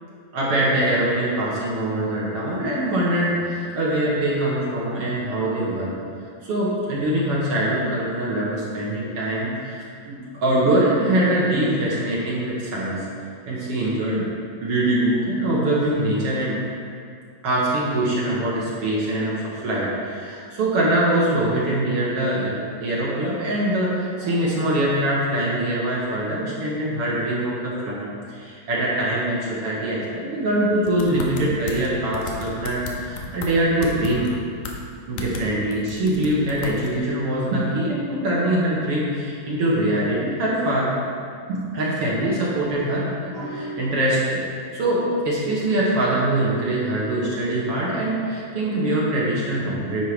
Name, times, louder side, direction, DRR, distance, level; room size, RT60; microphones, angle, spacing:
voice 1, 0.3-5.9 6.4-13.0 13.4-14.2 14.6-16.6 17.4-34.3 35.1-40.9 41.5-44.4 44.7-50.0, right 1 dB, 60° right, -6 dB, 1.6 m, -23 dB
sound 1, 30.9-31.9 32.1-33.5 33.8-34.3 34.6-34.8 35.2-35.4 35.7-37.0, left 5 dB, 75° left, 1.8 m, -34 dB
10.0 x 4.7 x 5.0 m, 2.2 s
omnidirectional pair, 4.1 m